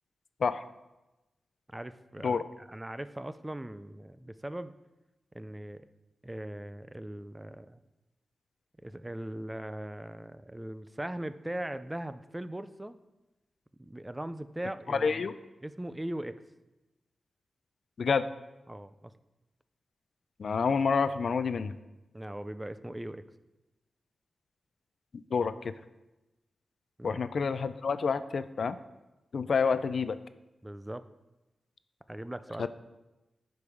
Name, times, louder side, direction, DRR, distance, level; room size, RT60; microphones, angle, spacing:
voice 1, 1.7-4.7 5.3-5.8 6.2-7.8 8.8-13.0 13.8-15.3 15.6-16.4 18.7-19.1 22.1-23.2 27.0-27.2 30.6-31.0 32.1-32.7, right 1 dB, 15° right, 12 dB, 0.5 m, -40 dB
voice 2, 14.9-15.3 18.0-18.3 20.4-21.7 25.1-25.7 27.0-28.8 29.3-30.2 32.6-32.7, left 5 dB, 65° left, 13 dB, 0.4 m, -28 dB
10.5 x 5.3 x 5.0 m, 1.0 s
cardioid pair, 75°, 0 cm